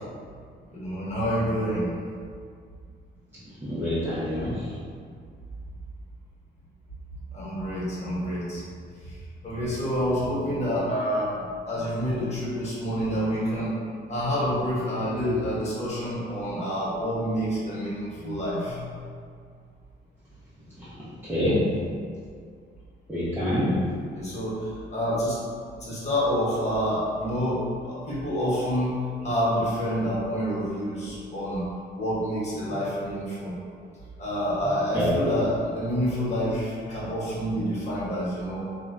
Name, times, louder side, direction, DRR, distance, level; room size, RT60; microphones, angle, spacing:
voice 1, 0.7-1.9 7.3-8.6 9.0-9.1 9.4-11.3 11.7-13.8 14.1-19.1 24.1-25.4 25.8-31.6 31.9-33.6 34.2-38.7, equal, 35° left, -8 dB, 1.2 m, -28 dB
voice 2, 3.6-4.6 20.8-20.9 21.3-21.7 23.1-23.8 34.9-35.1, left 1 dB, 10° right, -12 dB, 0.6 m, -26 dB
2.9 x 2.2 x 2.4 m, 2.2 s
cardioid pair, 90°, 20 cm